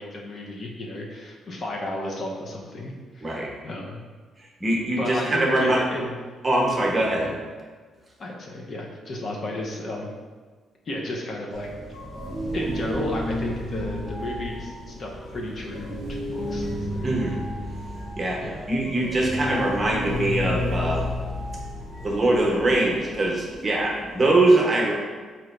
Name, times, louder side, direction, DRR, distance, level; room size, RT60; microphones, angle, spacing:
voice 1, 0.0-4.0 5.0-6.1 7.2-7.3 8.2-10.1 10.9-11.7 12.5-17.1 18.4-18.7, left 1 dB, 50° left, -1 dB, 0.7 m, -33 dB
voice 2, 4.6-5.8 6.4-7.3 17.0-17.4 18.2-21.1 22.0-24.9, right 2 dB, 30° right, -2 dB, 0.9 m, -22 dB
sound 1, 11.5-24.3, left 1 dB, 80° left, 1.4 m, -32 dB
3.8 x 2.9 x 3.2 m, 1.4 s
cardioid pair, 90°, 0 cm